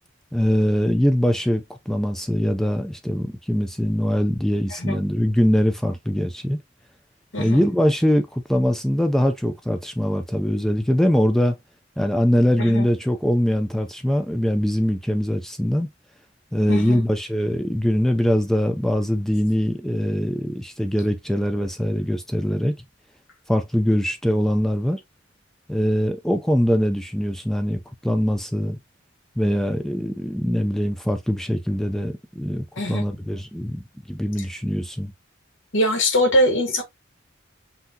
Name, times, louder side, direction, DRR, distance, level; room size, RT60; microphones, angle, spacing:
voice 1, 0.3-6.6 7.4-11.6 12.0-15.9 16.5-22.7 23.5-25.0 25.7-28.8 29.4-35.1, equal, ahead, 0.4 m, -22 dB
voice 2, 4.7-5.0 7.3-7.7 12.6-12.9 16.7-17.0 32.8-33.0 35.7-36.8, equal, 85° left, 2.1 m, -22 dB
5.7 x 2.7 x 2.7 m
head